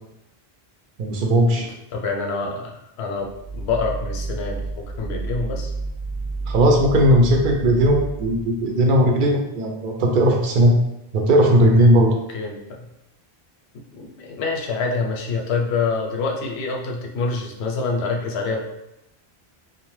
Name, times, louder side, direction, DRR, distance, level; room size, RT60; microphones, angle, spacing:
voice 1, 1.0-1.7 6.5-10.7 11.1-12.2, equal, 60° right, 2 dB, 0.6 m, -17 dB
voice 2, 1.6-5.7 12.3-12.9 13.9-18.8, left 4 dB, 90° left, 1 dB, 0.8 m, -26 dB
sound 1, 3.1-8.6, right 3 dB, 35° left, 0.4 m, -30 dB
2.6 x 2.1 x 3.1 m, 0.86 s
omnidirectional pair, 1.1 m